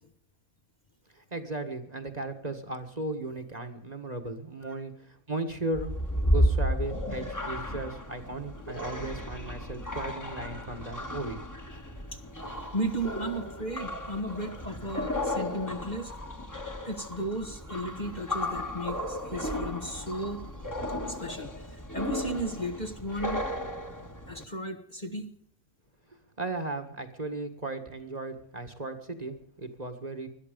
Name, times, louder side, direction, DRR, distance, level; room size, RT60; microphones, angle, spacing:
voice 1, 1.1-11.4 26.4-30.3, right 2 dB, 30° right, 6 dB, 1.7 m, -36 dB
sound 1, 5.7-24.4, equal, 15° left, 1.7 m, -33 dB
voice 2, 12.5-16.1 16.8-20.7 21.0-23.5 24.3-25.3, right 1 dB, 30° left, 5 dB, 1.4 m, -35 dB
21.0 x 13.0 x 5.2 m, 0.68 s
omnidirectional pair, 1.5 m